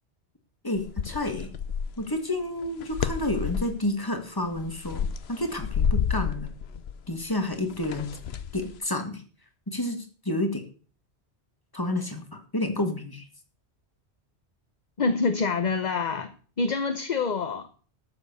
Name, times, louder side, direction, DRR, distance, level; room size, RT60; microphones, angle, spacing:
voice 1, 0.6-1.5 2.0-6.5 7.1-8.1 8.5-9.2 9.7-10.6 11.7-13.3, left 1 dB, 20° left, 5 dB, 2.1 m, -30 dB
sound 1, 0.8-2.1 2.6-3.8 4.4-8.8, left 7 dB, 70° left, 1.0 m, -30 dB
voice 2, 15.0-17.7, left 4 dB, 45° left, 10 dB, 0.9 m, -26 dB
13.0 x 7.0 x 6.9 m, 0.41 s
omnidirectional pair, 1.1 m